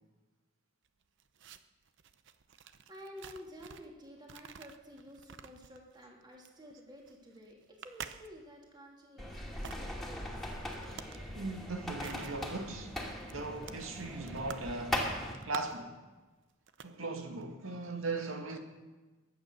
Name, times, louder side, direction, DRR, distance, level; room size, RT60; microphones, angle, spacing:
sound 1, 0.9-4.0 4.2-8.7 9.4-9.8 10.7-11.3 11.5-12.4 12.7-12.8 13.1-14.7 15.0-15.9 16.5-17.0 17.2-17.4, right 7 dB, 65° right, 0.8 m, -49 dB
voice 1, 2.8-10.6, equal, 20° right, 3.1 m, -52 dB
sound 2, 9.2-15.3, left 1 dB, ahead, 2.6 m, -40 dB
voice 2, 10.7-11.0 11.3-12.9 13.3-15.1 15.4-15.9 16.8-18.6, right 3 dB, 90° right, 2.1 m, -38 dB
22.0 x 9.1 x 6.6 m
head